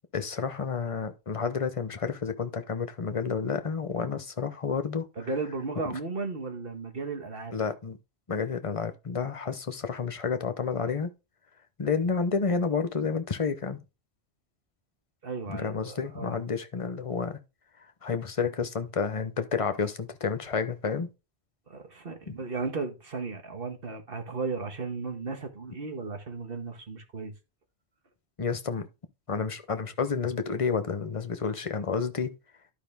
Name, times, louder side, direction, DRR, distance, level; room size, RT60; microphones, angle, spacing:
voice 1, 0.1-5.1 7.5-8.0 8.3-11.1 11.8-13.8 15.5-17.4 18.0-21.1 28.4-28.9 29.3-32.4, left 5 dB, 35° left, 0.8 m, -30 dB
voice 2, 5.1-7.5 15.2-16.4 21.7-27.3, right 4 dB, 55° right, 1.7 m, -35 dB
11.5 x 5.1 x 3.5 m
omnidirectional pair, 1.1 m